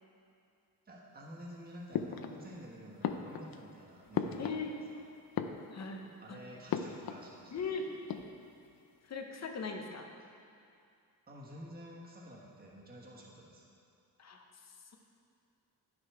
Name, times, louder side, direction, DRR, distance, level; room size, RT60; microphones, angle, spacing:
voice 1, 0.8-4.6 4.9-5.0 6.2-7.7 11.3-13.6, equal, 25° right, -4 dB, 1.3 m, -50 dB
sound 1, 1.9-2.7 3.0-4.9 5.2-6.1 6.7-7.3 7.6-7.7 7.9-8.7, left 8 dB, 70° left, 0.5 m, -38 dB
voice 2, 4.4-4.8 5.7-6.4 7.5-7.9 9.0-10.1 14.2-15.0, left 4 dB, 45° left, 3 dB, 0.8 m, -40 dB
10.5 x 6.2 x 4.7 m, 2.5 s
wide cardioid pair, 170°, 37 cm